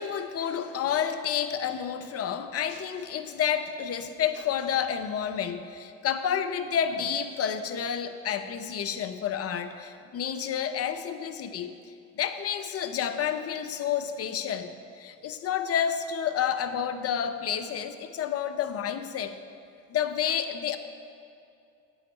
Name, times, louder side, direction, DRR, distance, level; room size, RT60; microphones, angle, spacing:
voice 1, 0.0-11.8 12.2-19.4 19.9-20.8, left 8 dB, 40° left, 9 dB, 0.7 m, -30 dB
8.5 x 7.9 x 4.5 m, 2.5 s
hypercardioid pair, 70°, 38 cm